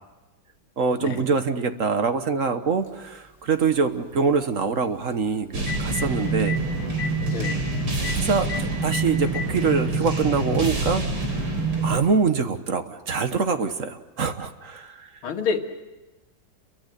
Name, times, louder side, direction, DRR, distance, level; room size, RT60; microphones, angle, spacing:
voice 1, 0.8-6.6 8.1-11.0 11.3-15.2, right 5 dB, 45° right, 9 dB, 1.3 m, -24 dB
Telephone, 2.9-3.0 5.1-5.2 5.5-6.1 6.5-6.6 7.0-7.1 7.4-7.5 8.0-8.1 8.5-8.6 8.9-9.5 10.5-10.6 12.0-12.1, left 6 dB, 30° left, 5.2 m, -31 dB
sound 1, 5.5-12.0, right 3 dB, 90° right, 5.0 m, -26 dB
voice 2, 7.3-7.7 15.2-15.6, left 5 dB, 80° left, 4 dB, 2.7 m, -28 dB
29.5 x 23.5 x 6.7 m, 1.1 s
omnidirectional pair, 2.3 m